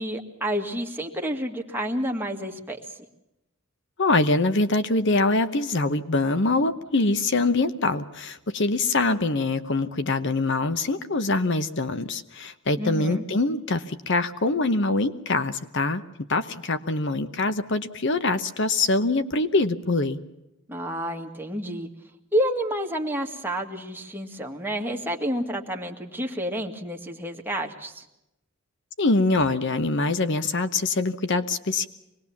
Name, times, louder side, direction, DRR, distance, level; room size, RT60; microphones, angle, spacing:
voice 1, 0.0-2.8 12.8-13.3 20.7-21.9 22.3-28.0, equal, 10° right, 2 dB, 2.0 m, -29 dB
voice 2, 4.0-16.0 16.3-20.2 29.0-31.9, left 2 dB, 60° left, 11 dB, 1.0 m, -24 dB
24.5 x 20.0 x 7.2 m, 0.89 s
head